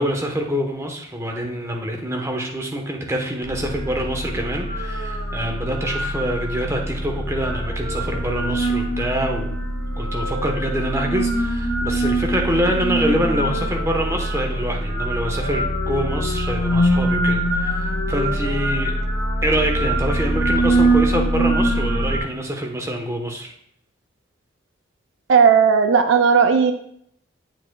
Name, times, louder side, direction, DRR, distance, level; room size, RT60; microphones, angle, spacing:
voice 1, 0.0-9.5 10.0-19.0 19.4-23.5, right 1 dB, 15° right, 1 dB, 0.9 m, -25 dB
sound 1, 3.4-22.2, right 1 dB, 80° left, 1.6 m, -23 dB
voice 2, 25.3-26.7, right 6 dB, 80° right, 7 dB, 0.5 m, -15 dB
8.9 x 7.1 x 2.2 m, 0.68 s
head